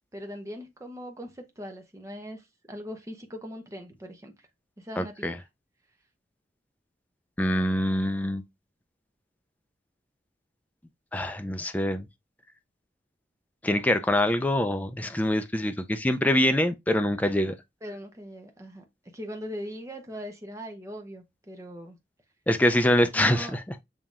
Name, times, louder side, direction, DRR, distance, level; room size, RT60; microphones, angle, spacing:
voice 1, 0.1-4.3 4.8-5.3 17.8-22.0 23.1-23.6, equal, 15° right, 0.8 m, -40 dB
voice 2, 5.0-5.4 7.4-8.4 11.1-12.1 13.6-17.5 22.5-23.6, left 1 dB, 10° left, 0.4 m, -24 dB
7.1 x 2.9 x 2.4 m
head